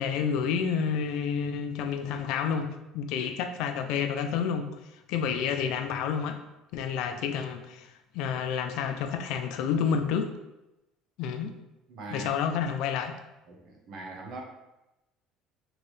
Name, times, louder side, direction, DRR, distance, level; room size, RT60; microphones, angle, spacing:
voice 1, 0.0-4.7 5.1-6.4 6.7-7.9 8.1-10.3 11.2-11.5 12.1-13.1, left 7 dB, 70° left, 7 dB, 0.3 m, -29 dB
voice 2, 11.9-12.3 13.5-14.4, right 2 dB, 60° right, 1 dB, 0.8 m, -41 dB
2.9 x 2.7 x 3.1 m, 0.95 s
supercardioid pair, 85°, 0 cm